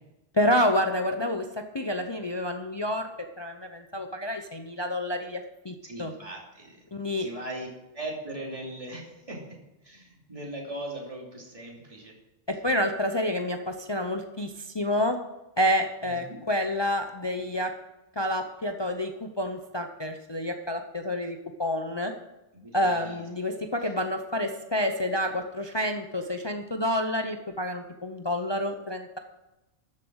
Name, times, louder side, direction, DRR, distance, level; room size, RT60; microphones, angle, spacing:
voice 1, 0.3-1.4 1.7-3.1 3.4-6.1 6.9-7.3 12.5-15.2 15.6-17.7 18.2-22.1 22.7-29.2, left 1 dB, 25° left, 5 dB, 0.7 m, -28 dB
voice 2, 5.8-7.7 7.9-9.4 9.8-12.1 16.0-16.4 22.5-23.2 23.8-23.9, right 1 dB, 30° right, -2 dB, 3.0 m, -39 dB
13.5 x 7.5 x 6.4 m, 0.97 s
omnidirectional pair, 1.2 m